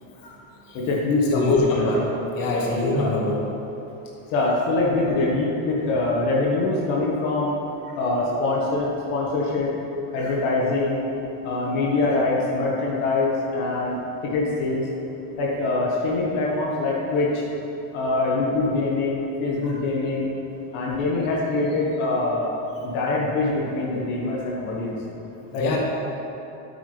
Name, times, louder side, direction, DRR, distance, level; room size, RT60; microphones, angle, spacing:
voice 1, 0.7-1.8 3.0-3.1 4.3-7.5 8.0-9.7 10.1-11.0 11.4-14.9 15.4-17.4 17.9-20.3 20.7-22.5 22.8-25.0 25.5-25.8, left 2 dB, 80° left, -3 dB, 1.6 m, -24 dB
voice 2, 1.3-2.0 2.3-3.4 10.1-10.3 25.6-25.8, left 2 dB, 50° left, -2 dB, 1.9 m, -23 dB
9.3 x 8.5 x 3.4 m, 2.9 s
cardioid pair, 120°, 45 cm